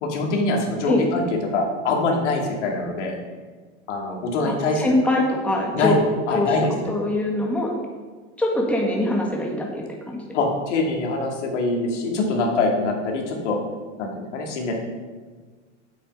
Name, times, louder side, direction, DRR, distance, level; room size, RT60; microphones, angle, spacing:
voice 1, 0.0-3.1 3.9-4.9 5.7-6.7 10.3-13.6 14.0-14.7, left 3 dB, 75° left, 0 dB, 2.4 m, -24 dB
voice 2, 4.8-5.9 6.3-6.5 6.9-7.7 8.4-10.2, left 1 dB, 5° left, -1 dB, 1.6 m, -23 dB
8.2 x 7.5 x 5.4 m, 1.4 s
hypercardioid pair, 120°, 36 cm